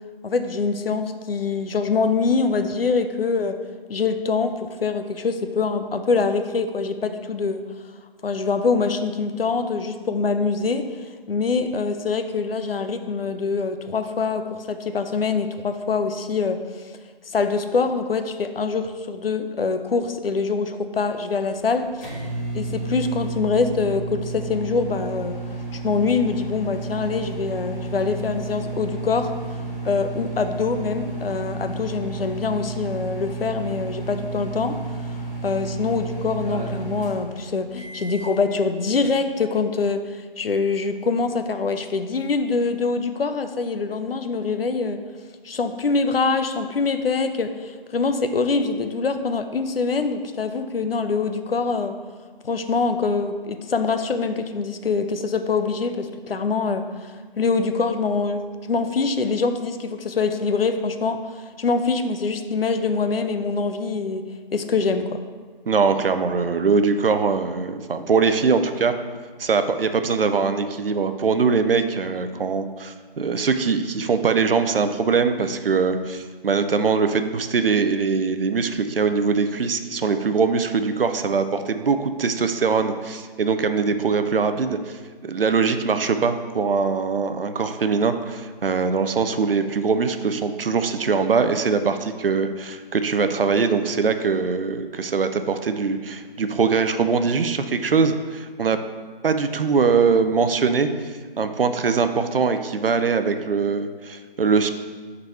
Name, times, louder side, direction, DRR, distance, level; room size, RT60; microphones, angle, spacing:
voice 1, 0.2-3.6 3.9-7.7 8.2-10.9 11.3-16.6 17.3-22.1 22.5-25.4 25.7-29.3 29.8-34.8 35.4-45.0 45.4-52.0 52.4-64.2 64.5-65.2, left 4 dB, 75° left, 8 dB, 0.6 m, -24 dB
sound 1, 21.4-38.4, right 3 dB, 35° left, 1.7 m, -32 dB
voice 2, 65.7-68.9 69.4-98.8 99.2-104.7, right 5 dB, 70° right, 9 dB, 0.5 m, -22 dB
5.3 x 4.0 x 4.8 m, 1.5 s
figure-of-eight pair, 150°, 29 cm